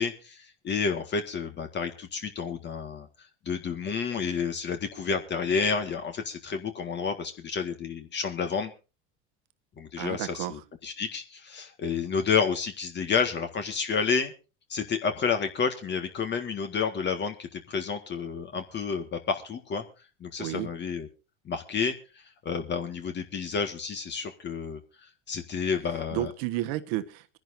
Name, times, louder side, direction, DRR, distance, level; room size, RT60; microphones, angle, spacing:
voice 1, 0.0-3.1 3.5-8.7 9.8-14.3 14.7-19.8 20.2-21.1 21.5-22.0 22.5-24.8 25.3-26.3, left 5 dB, 35° left, 6 dB, 1.8 m, -30 dB
voice 2, 10.0-10.6 20.4-20.7 26.1-27.4, right 15 dB, 70° right, 9 dB, 1.3 m, -32 dB
26.0 x 11.0 x 2.7 m, 0.32 s
supercardioid pair, 105°, 30 cm